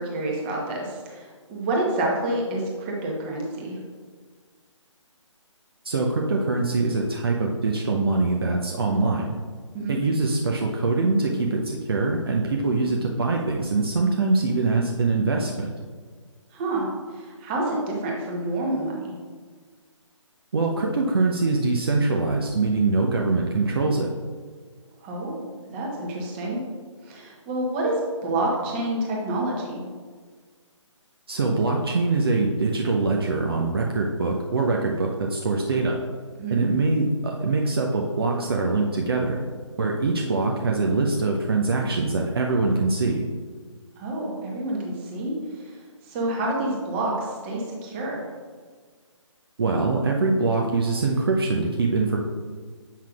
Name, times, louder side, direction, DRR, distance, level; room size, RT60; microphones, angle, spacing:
voice 1, 0.0-3.8 9.7-10.0 16.5-19.2 25.0-25.4 25.7-26.6 27.0-29.8 36.4-36.6 44.0-45.8 46.0-48.3, right 1 dB, 20° right, -2 dB, 1.0 m, -28 dB
voice 2, 5.8-9.4 9.9-15.7 20.5-24.1 31.3-36.0 36.5-39.4 39.8-43.2 49.6-52.2, right 3 dB, 50° right, 0 dB, 0.6 m, -23 dB
7.6 x 5.7 x 2.4 m, 1.6 s
figure-of-eight pair, 145°, 16 cm